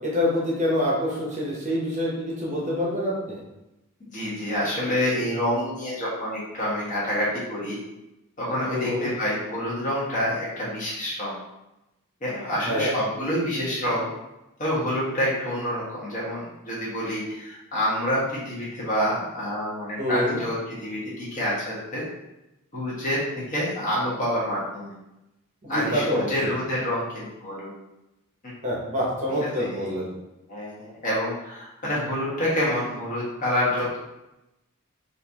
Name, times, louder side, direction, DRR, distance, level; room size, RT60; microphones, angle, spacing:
voice 1, 0.0-3.4 8.7-9.1 12.6-12.9 20.0-20.4 25.6-26.5 28.6-30.1, left 1 dB, 35° right, -5 dB, 0.9 m, -26 dB
voice 2, 4.0-7.8 8.4-11.3 12.2-14.1 14.6-22.0 22.7-23.2 23.5-24.9 25.7-27.7 28.4-28.5 29.6-29.7 30.5-34.0, equal, 35° left, -7 dB, 1.3 m, -27 dB
4.1 x 2.7 x 2.8 m, 0.94 s
head